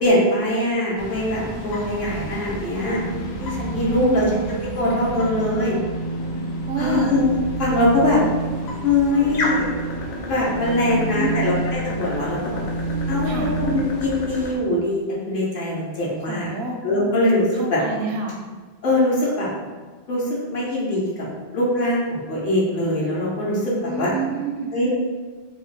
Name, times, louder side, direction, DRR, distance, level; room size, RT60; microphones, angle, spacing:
voice 1, 0.0-3.0 3.4-5.8 6.8-7.3 7.6-8.2 8.8-9.7 10.3-12.5 13.1-13.3 13.6-16.5 16.8-17.8 18.8-19.5 20.1-21.2 21.5-24.1 24.7-24.9, left 1 dB, 60° left, -5 dB, 0.9 m, -22 dB
sound 1, 1.0-14.6, left 1 dB, 85° left, 0.9 m, -34 dB
sound 2, 2.7-14.4, right 2 dB, 40° left, 0.4 m, -30 dB
voice 2, 3.9-4.4 6.7-7.2 10.8-11.5 13.2-13.5 16.3-16.8 17.6-18.3 23.8-24.7, right 5 dB, 85° right, 1 dB, 0.9 m, -29 dB
3.0 x 2.4 x 3.2 m, 1.4 s
omnidirectional pair, 1.1 m